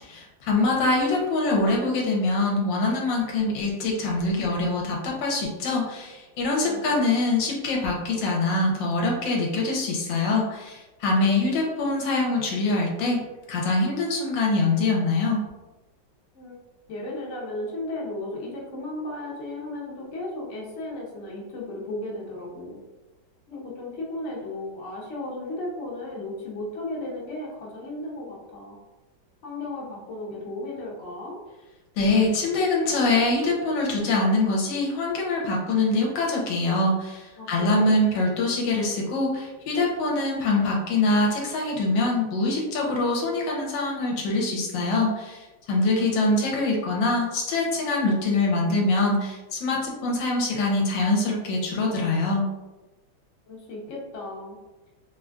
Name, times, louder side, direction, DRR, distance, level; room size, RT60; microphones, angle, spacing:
voice 1, 0.1-13.2 13.5-15.4 32.0-52.4, left 2 dB, 80° left, -1 dB, 1.3 m, -24 dB
voice 2, 6.6-7.2 16.3-16.5 16.9-22.8 23.5-28.8 29.4-31.4 37.4-38.0 53.5-54.6, left 2 dB, 60° left, -3 dB, 0.8 m, -35 dB
3.2 x 2.4 x 2.2 m, 1.1 s
omnidirectional pair, 2.1 m